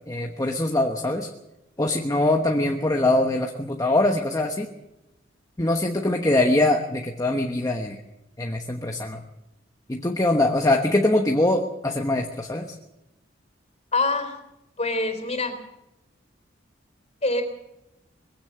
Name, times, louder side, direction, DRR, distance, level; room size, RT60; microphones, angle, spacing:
voice 1, 0.1-1.3 1.8-4.7 5.6-8.0 8.4-9.2 9.9-12.7, left 2 dB, 20° left, 3 dB, 1.2 m, -23 dB
voice 2, 13.9-14.3 14.8-15.5 17.2-17.4, left 2 dB, 35° left, 7 dB, 3.7 m, -24 dB
22.0 x 16.0 x 7.7 m, 0.92 s
head